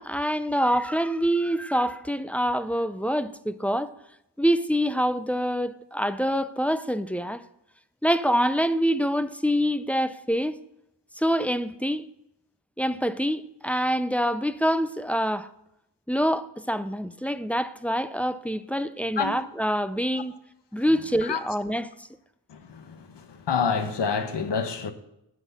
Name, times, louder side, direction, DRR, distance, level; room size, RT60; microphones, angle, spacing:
voice 1, 0.0-4.0 4.4-7.4 8.0-10.6 11.2-12.1 12.8-15.5 16.1-20.3 20.7-22.1, equal, 5° left, 0.4 m, -26 dB
voice 2, 22.5-24.9, left 6 dB, 65° left, 1.1 m, -28 dB
9.5 x 6.3 x 7.0 m
wide cardioid pair, 85°, 45 cm